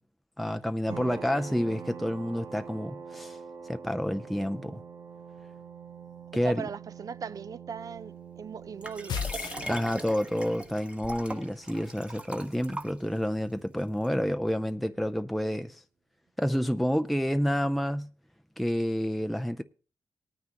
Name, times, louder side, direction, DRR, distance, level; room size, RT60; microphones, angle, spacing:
voice 1, 0.4-3.4 3.6-4.8 6.3-6.6 9.7-15.8 16.4-18.1 18.6-19.6, equal, ahead, 0.5 m, -29 dB
sound 1, 0.9-14.2, right 6 dB, 85° right, 1.1 m, -46 dB
voice 2, 6.4-9.3, right 6 dB, 55° right, 0.5 m, -39 dB
Liquid, 8.8-13.4 14.0-14.1, right 1 dB, 15° right, 1.3 m, -40 dB
sound 2, 9.1-10.4, left 7 dB, 85° left, 0.5 m, -34 dB
18.5 x 9.4 x 2.9 m
cardioid pair, 75°, 7 cm